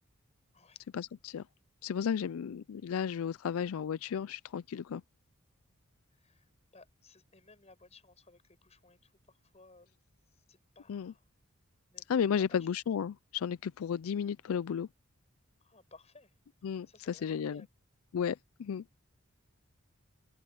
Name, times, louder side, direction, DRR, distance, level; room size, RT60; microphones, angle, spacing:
voice 1, 0.9-1.4 1.8-5.0 10.9-11.1 12.1-14.9 16.6-17.6 18.1-18.8, left 7 dB, 85° left, 0.4 m, -33 dB
voice 2, 6.1-10.0 10.3-11.3 11.9-12.6 15.6-16.4 16.8-17.7, left 3 dB, 30° left, 7.3 m, -60 dB
open air
head